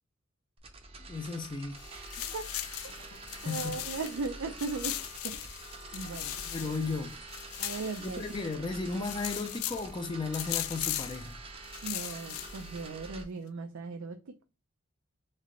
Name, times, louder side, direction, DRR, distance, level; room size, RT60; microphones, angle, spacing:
sound 1, 0.6-13.2, right 2 dB, 30° right, 0.6 m, -46 dB
voice 1, 1.1-1.8 3.5-3.8 6.5-7.2 8.0-11.3, left 3 dB, 20° left, 0.4 m, -35 dB
sound 2, 1.6-9.1, left 3 dB, 55° left, 0.8 m, -56 dB
sound 3, 1.8-4.3 4.6-8.5 8.9-9.9 10.3-11.3 11.6-12.8, left 13 dB, 85° left, 0.4 m, -38 dB
voice 2, 3.0-5.0 5.2-5.7 5.9-6.4 7.6-8.2 11.8-14.4, right 4 dB, 80° right, 0.5 m, -38 dB
3.3 x 3.2 x 3.7 m
head